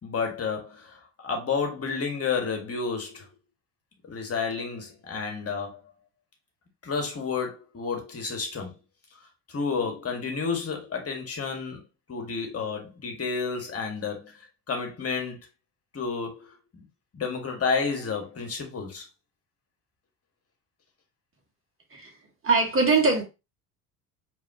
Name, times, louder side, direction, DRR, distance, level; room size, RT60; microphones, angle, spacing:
voice 1, 0.0-3.3 4.0-5.9 6.8-8.7 9.1-11.8 12.1-15.4 15.9-16.8 17.1-19.1, left 5 dB, 30° left, 1.7 m, -31 dB
voice 2, 22.4-23.2, right 3 dB, 25° right, 1.7 m, -22 dB
4.7 x 3.0 x 2.9 m
figure-of-eight pair, 60°, 48 cm